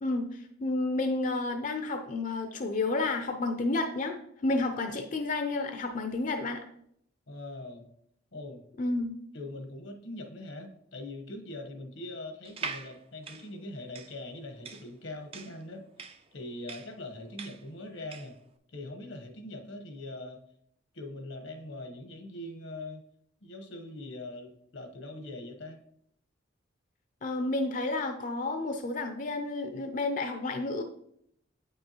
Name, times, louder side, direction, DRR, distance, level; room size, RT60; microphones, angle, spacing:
voice 1, 0.0-6.6 8.8-9.2 27.2-30.8, left 2 dB, 40° left, 5 dB, 0.5 m, -31 dB
voice 2, 7.3-7.9 8.3-8.6 9.3-15.8 16.3-18.3 18.7-20.4 20.9-23.0 23.4-25.8, left 2 dB, 85° left, 4 dB, 1.2 m, -42 dB
sound 1, 12.4-18.4, right 5 dB, 30° right, 0.4 m, -43 dB
8.4 x 5.4 x 3.0 m, 0.72 s
head